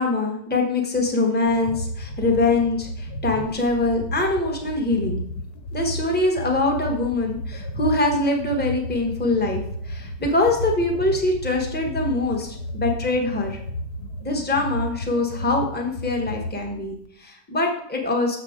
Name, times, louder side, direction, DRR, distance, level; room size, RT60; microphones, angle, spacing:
voice 1, 0.0-5.2 5.7-13.6 14.2-18.4, left 2 dB, 5° left, 2 dB, 0.9 m, -23 dB
sound 1, 1.4-17.1, equal, 70° left, 1.3 m, -33 dB
7.0 x 6.5 x 3.6 m, 0.68 s
omnidirectional pair, 1.8 m